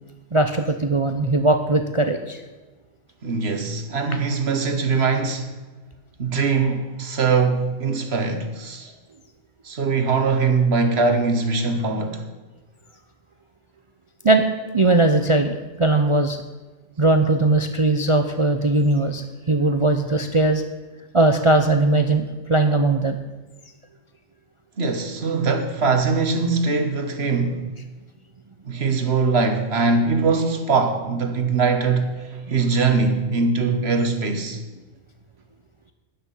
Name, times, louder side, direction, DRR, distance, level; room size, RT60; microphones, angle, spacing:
voice 1, 0.3-2.4 14.2-14.4 14.7-16.4 17.0-20.6 21.1-23.2, right 2 dB, 35° right, 0.5 m, -19 dB
voice 2, 3.2-5.5 6.2-8.9 9.6-12.2 24.8-27.7 28.6-34.6, right 4 dB, 50° right, 1.5 m, -22 dB
12.5 x 9.8 x 5.6 m
omnidirectional pair, 1.4 m